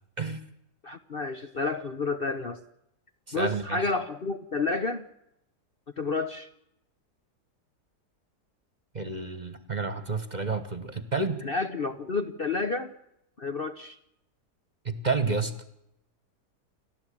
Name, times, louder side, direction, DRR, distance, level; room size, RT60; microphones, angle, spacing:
voice 1, 0.2-0.5 3.3-3.9 8.9-11.4 14.8-15.5, right 4 dB, 30° right, 10 dB, 1.4 m, -30 dB
voice 2, 0.8-2.6 3.3-5.0 6.0-6.5 11.4-12.9 13.4-14.0, left 3 dB, 40° left, 7 dB, 1.0 m, -30 dB
29.0 x 12.5 x 8.7 m, 0.82 s
omnidirectional pair, 1.7 m